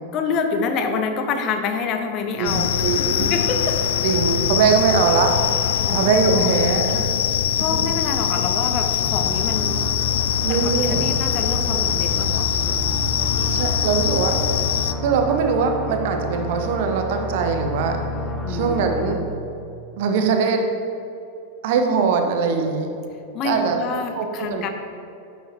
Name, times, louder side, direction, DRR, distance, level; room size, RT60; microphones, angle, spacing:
voice 1, 0.1-3.8 5.8-6.5 7.6-9.9 10.5-12.8 18.4-19.3 23.3-24.7, left 5 dB, 35° left, 6 dB, 0.8 m, -27 dB
sound 1, 2.4-14.9, left 10 dB, 60° left, 0.3 m, -23 dB
voice 2, 2.4-3.3 4.0-5.3 5.9-7.1 7.6-7.7 10.4-11.1 13.5-14.3 15.0-18.0 18.5-19.2 20.0-20.6 21.6-22.9 23.4-23.8 24.1-24.7, right 5 dB, 50° right, 4 dB, 1.0 m, -21 dB
sound 2, 9.0-19.2, equal, 5° left, 0.8 m, -30 dB
11.0 x 8.2 x 2.8 m, 2.8 s
figure-of-eight pair, 90°, 0 cm